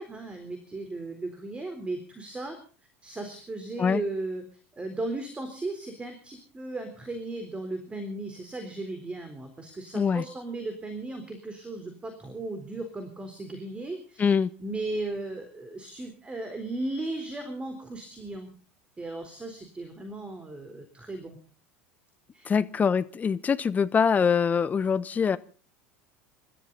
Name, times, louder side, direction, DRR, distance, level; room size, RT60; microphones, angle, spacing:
voice 1, 0.0-2.6 3.0-4.4 4.7-14.4 14.6-18.5 19.0-21.4 22.3-22.5, right 2 dB, 15° right, 7 dB, 3.8 m, -36 dB
voice 2, 9.9-10.2 14.2-14.5 22.4-25.4, left 6 dB, 25° left, 15 dB, 1.1 m, -24 dB
27.5 x 13.0 x 4.0 m, 0.38 s
figure-of-eight pair, 75°, 6 cm